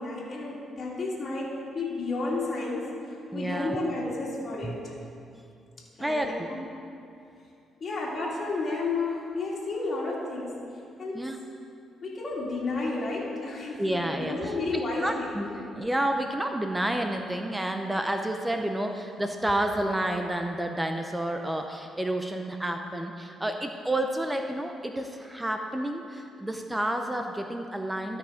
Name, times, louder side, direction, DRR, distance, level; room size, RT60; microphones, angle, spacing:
voice 1, 0.0-2.9 3.3-4.9 6.0-6.6 7.8-10.6 11.0-11.3 12.0-15.5, left 3 dB, 40° left, -6 dB, 2.5 m, -32 dB
voice 2, 3.3-3.8 4.6-4.8 6.0-6.5 11.1-11.4 13.8-15.5 15.7-28.2, right 1 dB, 10° right, 4 dB, 0.6 m, -30 dB
13.0 x 5.7 x 5.0 m, 2.5 s
cardioid pair, 90°, 0 cm